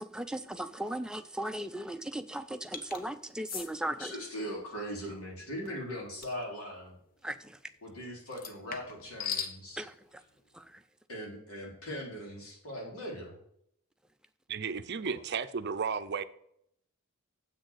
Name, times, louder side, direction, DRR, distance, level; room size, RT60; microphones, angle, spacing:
voice 1, 0.0-4.1 7.2-7.6 9.8-10.2 10.5-10.8, right 1 dB, 5° right, 9 dB, 0.5 m, -37 dB
sound 1, 2.7-3.0 3.5-3.7 6.2-6.4 8.3-9.6, left 7 dB, 40° left, 0.9 m, -38 dB
voice 2, 4.0-7.0 7.8-9.8 11.1-13.4 15.0-15.1, equal, 80° left, -2 dB, 4.0 m, -40 dB
voice 3, 14.5-16.2, right 5 dB, 50° right, 12 dB, 0.6 m, -33 dB
8.1 x 6.5 x 6.3 m, 0.72 s
head